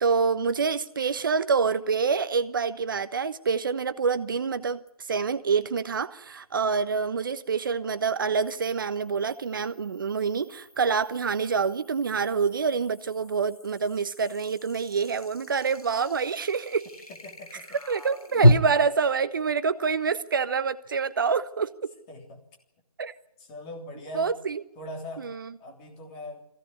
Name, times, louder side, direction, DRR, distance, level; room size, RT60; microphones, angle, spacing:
voice 1, 0.0-4.8 5.1-16.9 17.9-21.9 23.0-23.1 24.1-24.6 25.2-25.5, right 5 dB, 35° right, 1.2 m, -26 dB
sound 1, 4.9-5.0 8.4-18.5, equal, 80° left, 2.7 m, -31 dB
voice 2, 17.1-17.8 22.1-22.4 23.4-24.4 24.8-25.3 25.6-26.5, left 1 dB, 15° left, 3.3 m, -41 dB
22.5 x 16.5 x 9.7 m
figure-of-eight pair, 155°, 19 cm